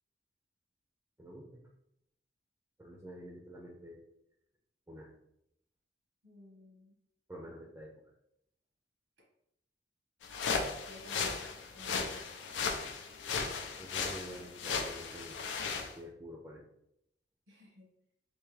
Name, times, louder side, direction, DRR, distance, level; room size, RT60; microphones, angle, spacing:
voice 1, 1.2-1.6 2.8-4.0 4.9-5.1 7.3-7.9 12.8-12.9 13.4-15.4 15.8-16.6, equal, 15° right, -1 dB, 0.4 m, -48 dB
voice 2, 6.2-7.0 10.8-11.4 11.7-12.3 17.5-17.9, left 1 dB, 90° right, -2 dB, 1.3 m, -54 dB
sound 1, 10.2-15.9, left 5 dB, 90° left, 0.5 m, -36 dB
3.5 x 2.7 x 3.2 m, 0.77 s
head